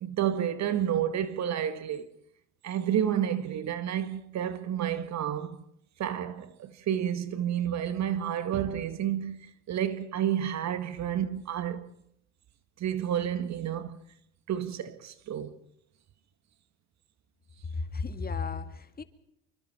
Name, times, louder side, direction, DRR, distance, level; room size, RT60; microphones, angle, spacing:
voice 1, 0.0-2.1 2.6-5.6 6.0-11.9 12.8-14.0 14.5-15.6, right 10 dB, 50° right, 2.0 m, -30 dB
voice 2, 17.7-19.0, left 4 dB, 25° left, 2.3 m, -34 dB
27.5 x 24.0 x 4.6 m
hypercardioid pair, 75°, 35 cm